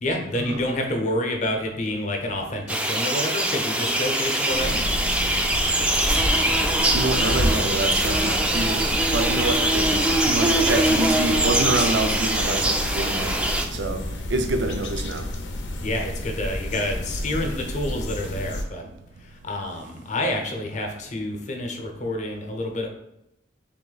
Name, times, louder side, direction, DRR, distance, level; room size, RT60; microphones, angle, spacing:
voice 1, 0.0-5.0 15.8-18.9 19.2-22.9, left 1 dB, 40° left, 3 dB, 0.7 m, -28 dB
sound 1, 2.7-13.6, right 1 dB, 5° right, 0.3 m, -23 dB
sound 2, 4.5-18.6, left 1 dB, 90° left, 0.6 m, -30 dB
voice 2, 6.9-8.8 9.1-13.4 13.7-14.0 14.3-15.2, right 2 dB, 80° right, 6 dB, 0.5 m, -26 dB
3.5 x 3.0 x 3.9 m, 0.85 s
head